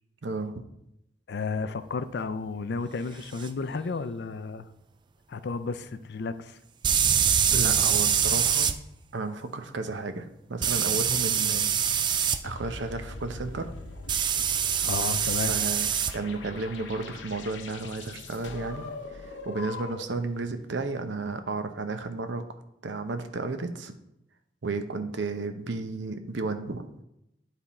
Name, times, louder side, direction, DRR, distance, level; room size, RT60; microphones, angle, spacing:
voice 1, 0.2-0.6 7.5-8.7 9.1-11.8 12.1-13.7 15.5-18.9 19.1-22.4 22.8-23.9 24.6-26.9, right 3 dB, 80° right, 8 dB, 0.7 m, -33 dB
voice 2, 1.3-4.7 5.3-6.6 14.8-15.5, left 4 dB, 65° left, 13 dB, 0.4 m, -32 dB
sound 1, 3.4-3.5 6.8-8.7 10.6-12.4 14.1-16.1, right 8 dB, 25° right, 0.3 m, -24 dB
sound 2, 12.4-20.3, left 3 dB, 90° left, 0.8 m, -41 dB
9.8 x 3.6 x 4.2 m, 0.84 s
head